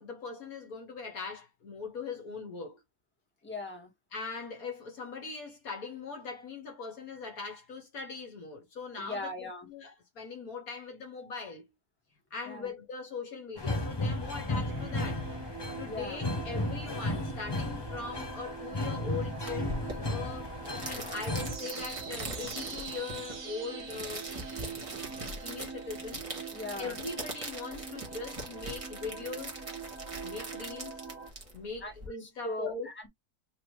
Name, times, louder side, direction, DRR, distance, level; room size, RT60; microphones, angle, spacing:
voice 1, 0.0-2.8 4.1-11.6 12.3-15.2 15.8-20.5 20.8-24.3 24.9-26.2 26.8-29.6 30.2-31.1 31.5-32.9, left 4 dB, 65° left, 1.7 m, -41 dB
voice 2, 3.4-3.9 8.9-9.7 12.5-12.7 15.8-16.2 26.5-26.9 31.8-31.9 32.2-33.1, left 2 dB, 5° left, 1.5 m, -39 dB
sound 1, 13.6-21.6, left 2 dB, 25° left, 0.6 m, -34 dB
sound 2, 14.7-31.3, right 6 dB, 55° right, 1.6 m, -44 dB
sound 3, 19.5-32.1, right 2 dB, 20° right, 1.3 m, -42 dB
4.0 x 2.8 x 3.2 m
omnidirectional pair, 1.7 m